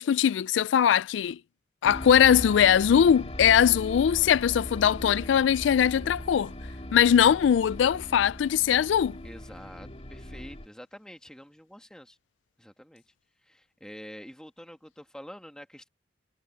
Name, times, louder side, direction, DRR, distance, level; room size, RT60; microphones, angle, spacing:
voice 1, 0.0-1.4 1.8-6.5 6.9-9.2, left 8 dB, 85° left, 0.3 m, -21 dB
sound 1, 1.8-10.7, left 1 dB, 35° left, 2.6 m, -39 dB
voice 2, 9.2-12.2 12.6-13.0 13.4-15.9, equal, 5° left, 1.9 m, -46 dB
head